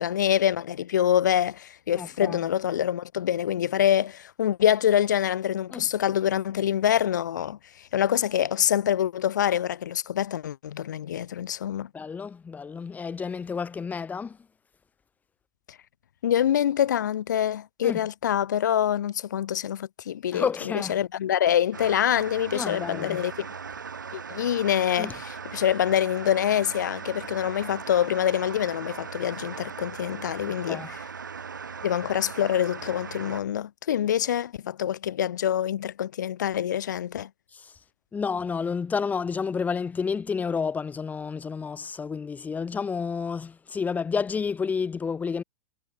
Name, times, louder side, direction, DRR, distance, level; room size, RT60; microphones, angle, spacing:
voice 1, 0.0-11.9 15.7-15.8 16.2-23.5 24.1-31.0 31.8-37.3, left 10 dB, 70° left, 1.1 m, -25 dB
voice 2, 1.9-2.4 5.7-5.8 11.9-14.4 17.8-18.0 20.3-21.0 22.5-23.2 25.0-25.1 30.5-30.9 37.5-37.7 38.1-45.4, left 5 dB, 15° left, 0.9 m, -30 dB
sound 1, 21.7-33.4, right 6 dB, 85° right, 1.0 m, -39 dB
figure-of-eight pair, 95°, 10 cm